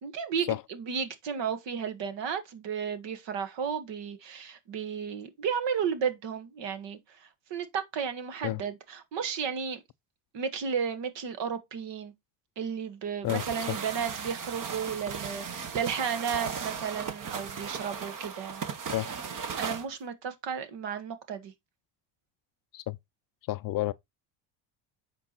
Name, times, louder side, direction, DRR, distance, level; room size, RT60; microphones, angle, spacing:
voice 1, 0.0-9.8 10.3-12.1 12.6-18.6 19.6-21.5, right 7 dB, 60° right, 1.7 m, -33 dB
voice 2, 13.2-13.8 18.9-19.1 22.7-23.0 23.5-23.9, left 17 dB, 50° left, 0.4 m, -30 dB
sound 1, 13.3-19.9, right 6 dB, 40° right, 1.3 m, -36 dB
8.2 x 4.8 x 4.1 m
cardioid pair, 115°, 48 cm